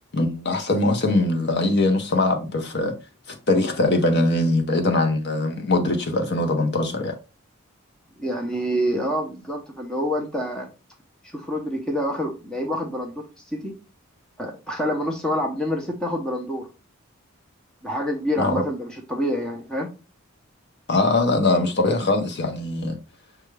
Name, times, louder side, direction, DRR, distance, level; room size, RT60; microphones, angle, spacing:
voice 1, 0.1-2.9 3.3-7.1 18.4-18.6 20.9-23.0, left 2 dB, 50° left, 0.7 m, -22 dB
voice 2, 8.2-10.7 11.2-13.7 14.4-16.7 17.8-19.9, equal, 5° left, 0.6 m, -27 dB
6.0 x 2.3 x 3.2 m
head